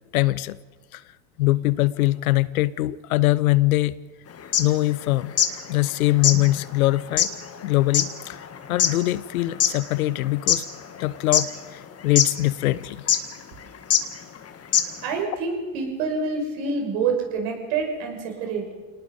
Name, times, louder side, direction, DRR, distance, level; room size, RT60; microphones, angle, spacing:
voice 1, 0.1-0.6 0.9-1.0 1.4-3.9 4.6-5.3 5.7-7.3 7.6-8.4 8.7-10.6 11.0-13.0, left 17 dB, 85° left, 0.8 m, -22 dB
sound 1, 4.4-5.6 5.9-6.0 6.2-9.8 10.2-11.0 11.3-11.8 12.2-12.3 13.1-13.3 13.9-14.0 14.4-14.5 14.7-15.1, left 8 dB, 35° left, 1.7 m, -22 dB
voice 2, 15.0-18.7, right 4 dB, 70° right, 6.0 m, -27 dB
26.5 x 19.0 x 5.4 m
hypercardioid pair, 85°, 42 cm